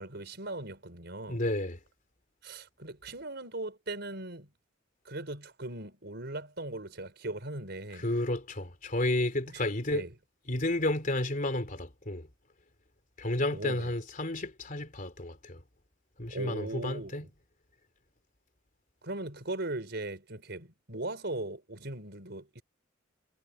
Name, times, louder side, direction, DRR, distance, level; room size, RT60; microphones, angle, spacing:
voice 1, 0.0-1.4 2.4-4.5 5.1-8.1 9.5-9.6 9.9-10.1 13.5-13.9 16.3-17.3 19.0-22.6, right 2 dB, 60° right, 5.4 m, -39 dB
voice 2, 1.3-1.8 7.9-10.1 10.5-12.3 13.2-15.6 16.2-17.3, left 1 dB, 45° left, 3.3 m, -31 dB
head